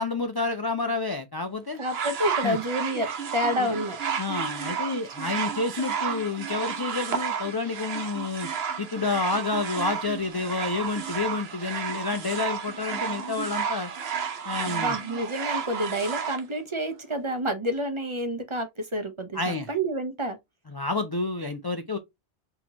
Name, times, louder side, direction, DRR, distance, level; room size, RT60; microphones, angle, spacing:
voice 1, 0.0-1.8 2.4-2.6 3.6-3.7 4.2-8.5 8.8-13.9 14.4-15.0 19.3-19.7 20.7-22.0, left 3 dB, 40° left, 0.3 m, -29 dB
voice 2, 1.8-4.0 14.6-20.4, equal, 30° right, 0.7 m, -29 dB
sound 1, 1.8-16.4 17.3-17.4, right 7 dB, 75° right, 1.0 m, -32 dB
4.2 x 2.9 x 2.8 m
omnidirectional pair, 1.1 m